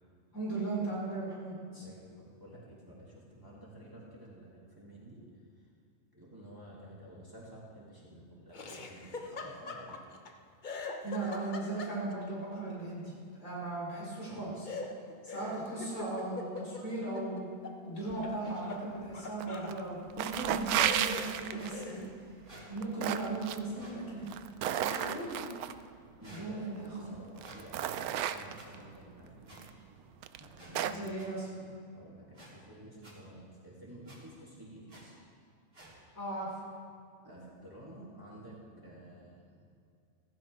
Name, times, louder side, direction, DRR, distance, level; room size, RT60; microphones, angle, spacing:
voice 1, 0.3-1.8 5.1-5.3 11.0-13.1 13.4-14.7 15.2-17.5 17.8-22.0 22.7-24.3 24.7-25.4 26.2-27.1 28.6-28.7 30.8-31.6 36.1-36.5, right 2 dB, 70° left, -6 dB, 4.8 m, -37 dB
voice 2, 1.7-5.2 6.1-10.0 26.2-26.6 26.9-29.6 30.4-31.2 31.9-35.2 37.2-39.6, right 1 dB, 15° right, -6 dB, 2.4 m, -51 dB
Laughter, 8.5-10.3 10.6-12.3 14.7-17.8 18.1-19.8 20.4-20.5 20.8-22.1, left 3 dB, 40° left, 0.9 m, -42 dB
sound 1, 19.4-19.8 20.1-21.8 22.6-23.6 24.2-25.7 26.8-26.9 27.4-28.8 29.6-29.7 30.2-31.1, right 10 dB, 90° right, 1.1 m, -33 dB
sound 2, 21.6-21.7 22.4-22.7 23.7-24.0 24.8-25.1 26.2-26.5 27.4-27.6 28.5-28.7 29.5-29.6 30.5-30.7 31.2-31.3 32.3-32.5 33.0-33.1 34.0-34.2 34.9-35.0 35.7-35.9, right 1 dB, 40° right, 3.4 m, -52 dB
16.0 x 15.0 x 3.4 m, 2.3 s
omnidirectional pair, 1.5 m